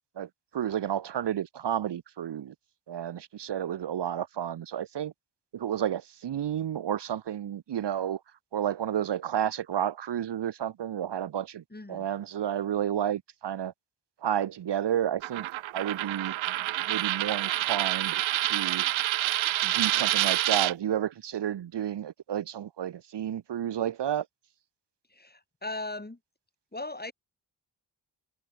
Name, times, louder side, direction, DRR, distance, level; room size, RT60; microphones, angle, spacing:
voice 1, 0.2-2.5 2.9-5.1 5.5-8.2 8.5-11.6 11.9-13.7 14.2-15.5 15.7-16.4 16.9-18.8 19.6-24.2, right 10 dB, 65° right, 1.2 m, -31 dB
voice 2, 11.7-12.1 25.1-26.2 26.7-27.1, left 2 dB, 20° left, 7.5 m, -38 dB
Coin (dropping), 15.2-20.7, right 15 dB, 85° right, 1.3 m, -27 dB
supercardioid pair, 45°, 45 cm